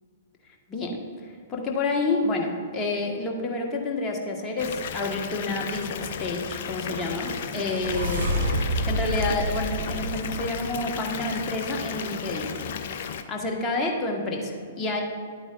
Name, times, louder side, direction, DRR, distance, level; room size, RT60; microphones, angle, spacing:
voice 1, 1.5-8.4 8.8-12.5 13.3-15.0, left 2 dB, 15° left, -1 dB, 1.4 m, -29 dB
Water tap faucet / Bathtub (filling or washing) / Fill (with liquid), 4.6-13.2, left 7 dB, 50° left, 0.6 m, -34 dB
sound 1, 6.9-11.1, equal, 60° right, 1.3 m, -29 dB
11.5 x 8.7 x 2.5 m, 2.1 s
figure-of-eight pair, 115°, 0 cm